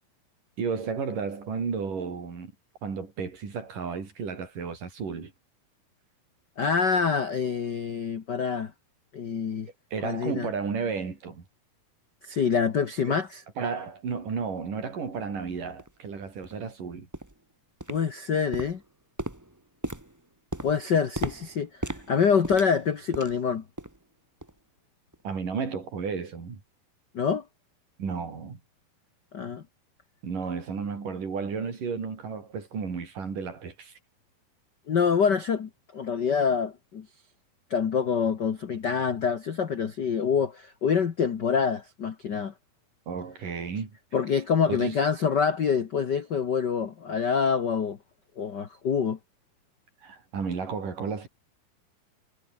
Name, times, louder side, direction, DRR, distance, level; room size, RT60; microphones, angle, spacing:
voice 1, 0.6-2.5 2.8-5.3 9.9-11.5 13.1-13.2 13.6-17.1 25.2-26.6 28.0-28.6 30.2-34.0 43.1-43.9 44.7-44.9 50.0-51.3, right 5 dB, 60° right, 6.2 m, -33 dB
voice 2, 6.6-8.7 9.1-9.7 10.0-10.5 12.2-13.4 17.9-18.8 20.6-21.7 22.1-23.6 27.1-27.4 29.3-29.6 34.9-37.1 37.7-42.5 44.1-48.0 48.4-49.2, left 6 dB, 60° left, 1.1 m, -26 dB
sound 1, 15.1-15.2 15.8-15.9 16.4-16.6 17.1-17.4 17.8-18.2 18.5-23.5 23.8-24.0 24.4-24.6 25.1-25.2, right 1 dB, 15° right, 0.7 m, -37 dB
omnidirectional pair, 4.2 m